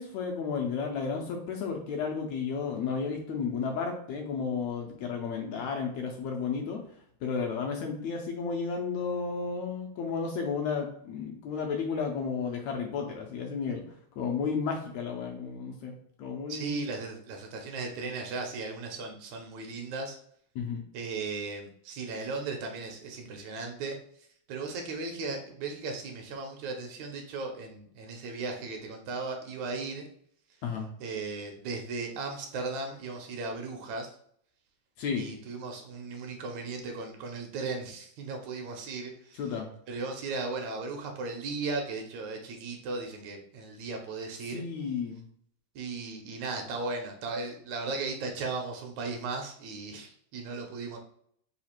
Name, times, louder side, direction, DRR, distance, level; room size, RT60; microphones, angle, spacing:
voice 1, 0.0-6.8 7.2-13.8 14.2-15.9 16.2-16.8 20.5-20.8 30.6-30.9 35.0-35.3 39.4-39.7 44.5-45.2, left 5 dB, 75° left, 2 dB, 1.7 m, -32 dB
voice 2, 16.5-20.2 20.9-24.0 24.5-30.1 31.0-34.1 35.2-39.4 39.9-44.6 45.8-51.0, right 3 dB, 75° right, 3 dB, 1.9 m, -36 dB
4.9 x 2.4 x 4.3 m, 0.65 s
omnidirectional pair, 3.5 m